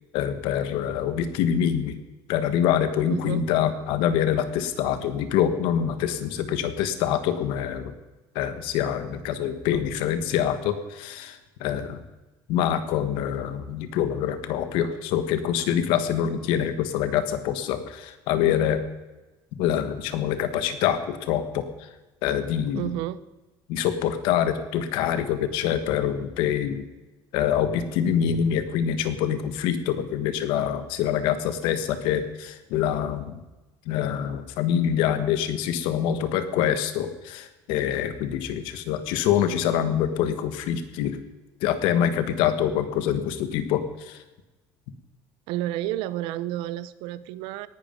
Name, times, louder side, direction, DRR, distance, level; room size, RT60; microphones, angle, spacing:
voice 1, 0.1-2.0 2.3-7.9 8.3-12.0 12.5-18.8 19.6-21.9 22.2-22.9 23.7-26.8 27.3-33.4 33.9-41.2 41.6-44.2, left 9 dB, 70° left, 10 dB, 1.5 m, -25 dB
voice 2, 3.1-3.4 22.7-23.2 45.5-47.7, right 13 dB, 75° right, 17 dB, 0.8 m, -30 dB
18.5 x 11.0 x 5.3 m, 1.1 s
cardioid pair, 180°, 9 cm